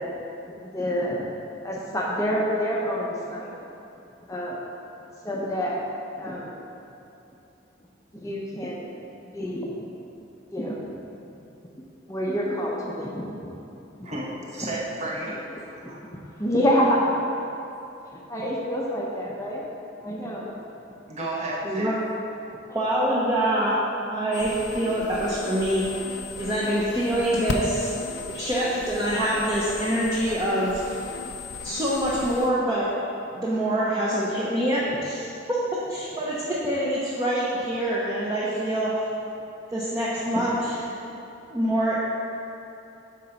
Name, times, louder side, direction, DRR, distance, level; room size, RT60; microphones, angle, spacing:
voice 1, 0.4-1.3 1.6-3.5 4.3-4.6 5.2-5.8 6.2-6.5 8.1-8.9 9.2-9.9 10.5-11.3 12.1-14.1 15.8-17.1 18.3-19.7 20.0-20.5 40.3-40.4 41.1-41.2, equal, 15° left, -4 dB, 0.7 m, -28 dB
voice 2, 14.0-16.0 21.1-22.0, right 1 dB, 35° right, -4 dB, 1.3 m, -32 dB
voice 3, 22.7-23.8 24.0-25.9 26.4-27.9 28.3-30.8 31.6-32.9 33.4-35.2 35.9-38.9 39.7-40.7 41.5-42.0, right 1 dB, 20° right, -7 dB, 0.9 m, -25 dB
sound 1, 24.3-32.5, left 3 dB, 70° left, 0.6 m, -36 dB
9.2 x 3.9 x 5.8 m, 2.9 s
head